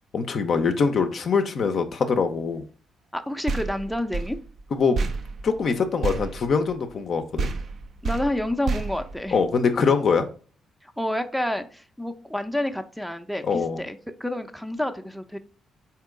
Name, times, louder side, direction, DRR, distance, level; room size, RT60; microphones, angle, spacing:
voice 1, 0.1-2.6 4.7-5.1 5.4-7.5 9.3-10.3 13.4-13.8, left 5 dB, 55° left, 6 dB, 0.5 m, -23 dB
voice 2, 3.1-4.4 8.0-9.4 10.8-15.4, left 1 dB, ahead, 7 dB, 0.5 m, -29 dB
sound 1, 3.5-7.1 7.4-9.8, right 4 dB, 60° right, 0.4 m, -31 dB
3.7 x 2.8 x 3.6 m, 0.39 s
hypercardioid pair, 45°, 0 cm